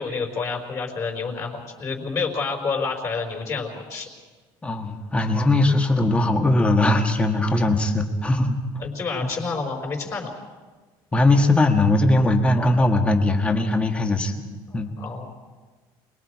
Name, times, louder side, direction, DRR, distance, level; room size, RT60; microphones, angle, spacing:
voice 1, 0.0-4.1 8.8-10.3 14.7-15.3, left 4 dB, 30° left, 2 dB, 4.8 m, -29 dB
voice 2, 4.6-8.6 11.1-14.3 14.7-14.9, left 2 dB, 10° left, 4 dB, 1.6 m, -20 dB
28.0 x 21.0 x 4.8 m, 1.3 s
cardioid pair, 160°, 10 cm